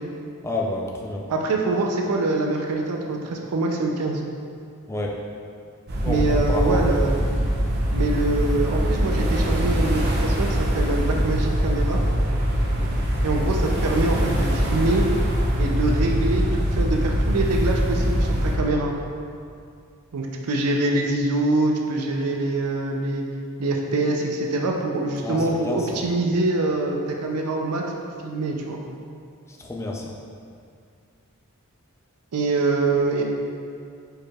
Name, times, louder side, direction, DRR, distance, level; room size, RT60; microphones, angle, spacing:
voice 1, 0.4-1.3 4.9-5.2 6.0-7.0 25.2-26.0 29.5-30.1, left 2 dB, 10° left, -2 dB, 0.3 m, -29 dB
voice 2, 1.3-4.2 6.1-7.2 7.9-12.0 13.2-15.1 15.6-18.9 20.1-23.2 23.6-27.8 28.2-28.8 32.3-33.2, right 2 dB, 90° right, 1 dB, 0.5 m, -24 dB
sound 1, 5.9-18.6, equal, 45° right, 0.7 m, -23 dB
4.6 x 4.6 x 2.3 m, 2.3 s
head